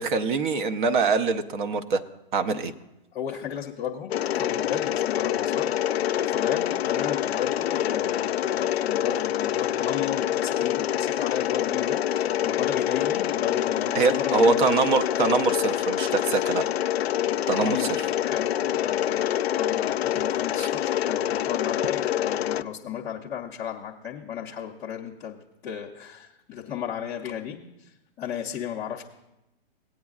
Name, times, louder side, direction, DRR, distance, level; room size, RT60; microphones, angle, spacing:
voice 1, 0.0-2.0 2.3-2.7 13.9-16.7 17.5-18.0 20.6-20.7, right 4 dB, 50° right, 8 dB, 0.7 m, -24 dB
voice 2, 3.1-14.6 17.6-17.9 18.2-25.4 25.6-29.0, left 9 dB, 10° left, -8 dB, 0.4 m, -34 dB
Mechanisms, 4.1-22.6, left 11 dB, 80° left, 0.5 m, -26 dB
17.5 x 8.6 x 2.4 m, 0.94 s
hypercardioid pair, 140°, 31 cm